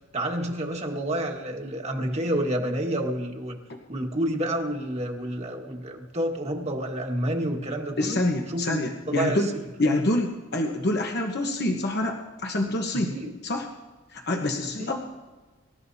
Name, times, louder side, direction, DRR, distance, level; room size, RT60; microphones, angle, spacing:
voice 1, 0.1-3.6 3.9-8.2 8.5-8.8 9.1-9.4 13.1-13.3 14.8-15.0, right 1 dB, 35° right, 1 dB, 1.5 m, -29 dB
voice 2, 8.0-9.5 9.8-13.1 13.4-13.7 14.1-15.0, left 1 dB, 55° left, 2 dB, 1.1 m, -26 dB
25.5 x 13.0 x 2.8 m, 1.3 s
head